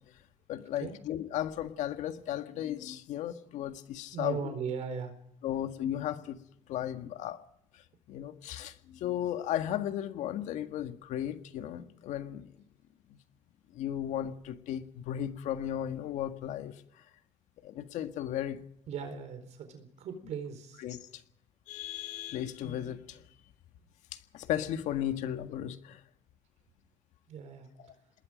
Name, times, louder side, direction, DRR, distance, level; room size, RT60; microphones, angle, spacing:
voice 1, 0.5-4.5 4.9-5.0 5.4-6.4 6.7-7.4 7.7-7.8 8.1-12.5 13.1-13.2 13.7-16.7 17.6-18.6 20.8-21.2 21.7-23.2 24.1-26.0, left 11 dB, 75° left, 8 dB, 1.8 m, -35 dB
voice 2, 4.1-5.1 18.9-20.8 27.3-27.7, right 6 dB, 65° right, 7 dB, 4.3 m, -38 dB
27.0 x 20.5 x 5.2 m, 0.74 s
cardioid pair, 120°, 12 cm